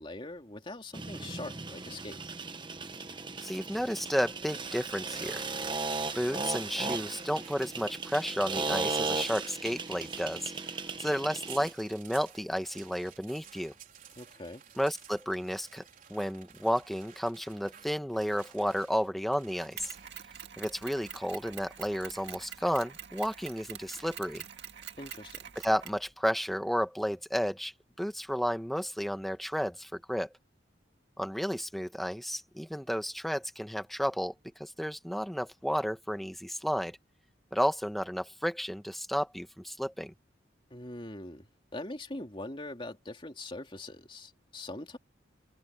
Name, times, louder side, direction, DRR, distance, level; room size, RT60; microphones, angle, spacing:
voice 1, 0.0-2.2 14.2-14.6 25.0-25.4 40.7-41.5 41.7-45.0, left 2 dB, 25° left, 2.9 m, -42 dB
sound 1, 0.9-11.7, right 3 dB, 25° right, 1.2 m, -36 dB
voice 2, 3.4-5.4 6.1-10.5 11.0-13.7 14.8-19.9 20.6-24.4 25.5-30.3 31.2-37.0 37.5-40.1, equal, ahead, 1.4 m, -32 dB
sound 2, 5.8-20.1, right 9 dB, 45° right, 4.5 m, -53 dB
Mechanisms, 19.8-26.1, right 9 dB, 65° right, 2.1 m, -46 dB
head